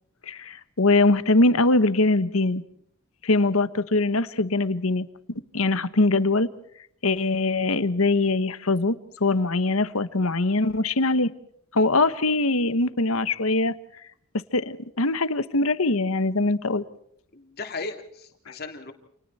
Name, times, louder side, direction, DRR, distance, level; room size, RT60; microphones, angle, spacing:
voice 1, 0.3-2.6 3.2-5.1 5.5-6.5 7.0-11.3 11.7-13.7 14.5-16.8 18.5-18.6, left 2 dB, 85° left, 13 dB, 1.4 m, -22 dB
voice 2, 17.3-18.9, left 3 dB, 50° left, 4 dB, 3.4 m, -36 dB
29.5 x 29.0 x 4.4 m, 0.66 s
head